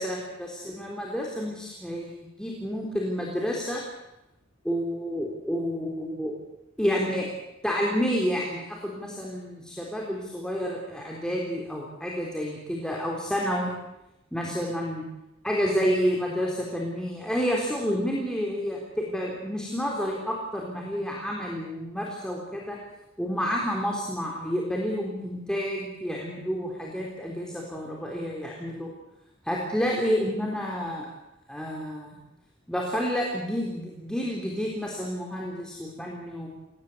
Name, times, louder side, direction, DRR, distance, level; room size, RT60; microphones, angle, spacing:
voice 1, 0.0-3.8 4.6-6.3 6.8-7.3 7.6-13.7 14.3-15.0 15.4-22.8 23.2-28.9 29.4-31.1 31.5-32.2 32.7-36.5, equal, 5° left, -2 dB, 3.9 m, -29 dB
28.5 x 19.0 x 8.1 m, 0.90 s
head